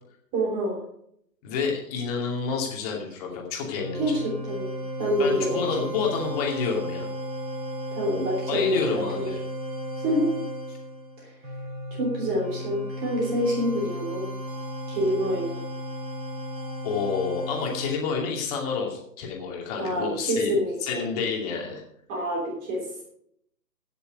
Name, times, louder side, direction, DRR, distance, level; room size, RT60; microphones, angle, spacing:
voice 1, 0.3-0.8 3.9-5.9 7.9-9.3 10.0-10.3 11.2-11.3 11.9-14.3 14.9-15.6 19.8-21.0 22.1-23.0, equal, 20° right, -1 dB, 3.2 m, -27 dB
voice 2, 1.4-4.2 5.2-7.1 8.5-9.4 16.8-20.5 20.8-21.8, left 5 dB, 25° left, 0 dB, 2.5 m, -29 dB
sound 1, 3.7-17.9, equal, 85° right, 2.8 m, -35 dB
16.0 x 6.9 x 5.2 m, 0.71 s
hypercardioid pair, 150°, 50 cm